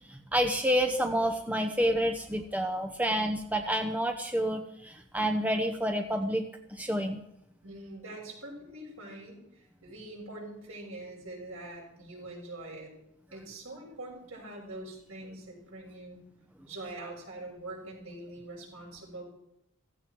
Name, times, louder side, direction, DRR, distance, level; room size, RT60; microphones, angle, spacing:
voice 1, 0.1-7.2, equal, 5° right, 4 dB, 0.9 m, -29 dB
voice 2, 7.6-12.9 13.3-16.2 16.6-19.2, right 2 dB, 70° right, -1 dB, 6.9 m, -44 dB
16.0 x 15.5 x 4.7 m, 0.80 s
head